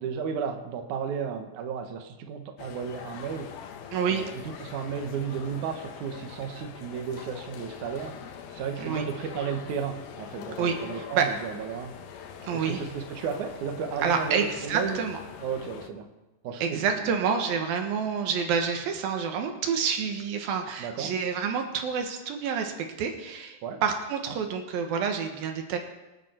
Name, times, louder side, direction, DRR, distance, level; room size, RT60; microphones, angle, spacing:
voice 1, 0.0-3.5 4.1-8.2 8.5-11.9 12.5-15.0 15.4-16.1 16.4-17.1 20.8-21.1 23.6-23.8, right 6 dB, 65° right, 4 dB, 2.6 m, -33 dB
sound 1, 2.6-15.9, left 7 dB, 90° left, 3.0 m, -43 dB
voice 2, 3.9-4.2 8.8-9.0 10.6-11.3 12.4-12.8 14.0-15.2 16.6-22.7 23.0-25.8, right 6 dB, 85° right, 4 dB, 3.2 m, -28 dB
25.5 x 9.3 x 4.5 m, 1.1 s
omnidirectional pair, 4.1 m